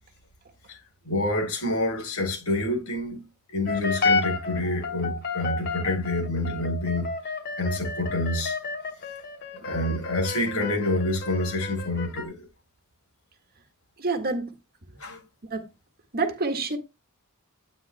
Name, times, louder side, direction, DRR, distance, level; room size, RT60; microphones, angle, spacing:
voice 1, 1.0-7.1 7.6-8.6 9.6-12.5 15.0-15.2, left 1 dB, 70° left, 7.2 m, -27 dB
sound 1, 3.7-12.2, left 4 dB, 50° left, 2.8 m, -31 dB
voice 2, 14.0-14.5 14.9-15.0 15.4-15.7 16.1-16.8, right 3 dB, 45° right, 1.7 m, -28 dB
13.0 x 9.5 x 2.2 m
head